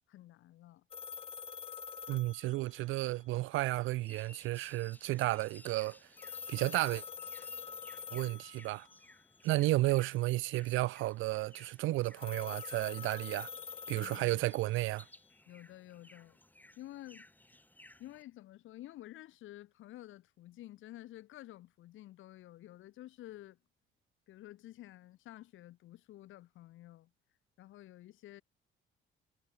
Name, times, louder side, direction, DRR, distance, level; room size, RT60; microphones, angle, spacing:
voice 1, 0.1-0.8 14.0-14.5 15.5-16.4 16.8-17.3 18.0-23.6 24.3-27.1 27.6-28.4, left 15 dB, 85° left, 1.7 m, -51 dB
sound 1, 0.9-3.2 6.2-9.0 12.2-15.1, left 7 dB, 30° left, 0.4 m, -46 dB
voice 2, 2.1-6.0 6.5-7.0 8.1-8.9 9.4-13.5 13.9-15.1, right 18 dB, 90° right, 0.6 m, -32 dB
sound 2, 3.9-18.2, left 1 dB, 10° left, 2.1 m, -60 dB
cardioid pair, 90°, 20 cm